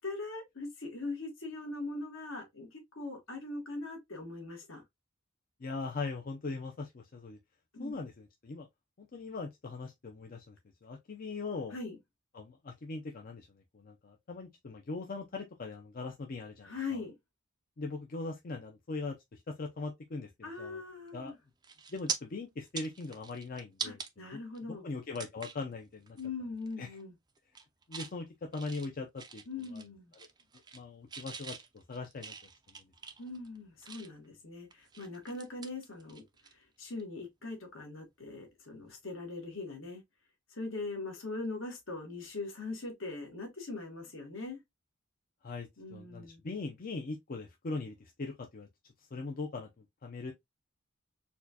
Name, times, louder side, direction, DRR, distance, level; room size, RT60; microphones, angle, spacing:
voice 1, 0.0-4.8 7.7-7.9 11.7-12.0 16.6-17.1 20.4-21.3 23.8-24.8 26.2-27.1 29.5-30.1 33.2-36.2 36.5-40.0 40.5-44.6 45.8-46.4, left 3 dB, 75° left, 1.5 m, -41 dB
voice 2, 5.6-7.4 7.8-8.7 9.0-10.6 10.8-11.8 12.3-17.0 17.8-20.8 21.1-21.3 21.9-24.0 24.3-24.4 24.8-26.2 26.8-27.0 27.9-29.4 29.7-29.8 30.7-32.3 45.4-48.7 49.1-50.3, left 3 dB, 45° left, 0.5 m, -40 dB
sound 1, 21.1-21.3 21.6-22.2 22.6-24.1 24.5-24.6 25.1-25.6 26.1-26.3 26.6-27.0 27.4-28.1 28.5-29.9 30.1-30.8 31.1-34.3 34.7-36.5 36.8-37.0 38.9-39.0, right 6 dB, 20° right, 0.4 m, -43 dB
4.3 x 2.3 x 2.7 m
head